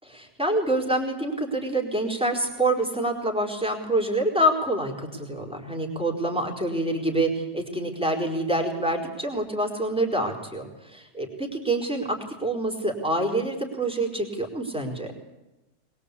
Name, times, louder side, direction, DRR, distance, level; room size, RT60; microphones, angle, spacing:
voice 1, 0.1-15.1, right 1 dB, 5° right, 2 dB, 4.5 m, -26 dB
22.5 x 22.0 x 8.5 m, 0.99 s
omnidirectional pair, 1.6 m